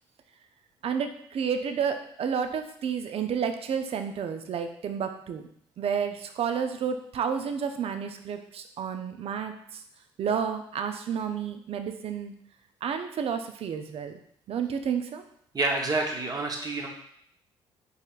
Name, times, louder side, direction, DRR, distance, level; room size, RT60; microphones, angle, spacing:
voice 1, 0.8-5.5 5.8-9.8 10.2-12.3 12.8-14.2 14.5-15.2, right 7 dB, 45° right, 7 dB, 0.6 m, -31 dB
voice 2, 15.5-16.9, right 2 dB, 30° right, 1 dB, 1.0 m, -28 dB
5.1 x 4.1 x 2.4 m, 0.69 s
figure-of-eight pair, 50°, 13 cm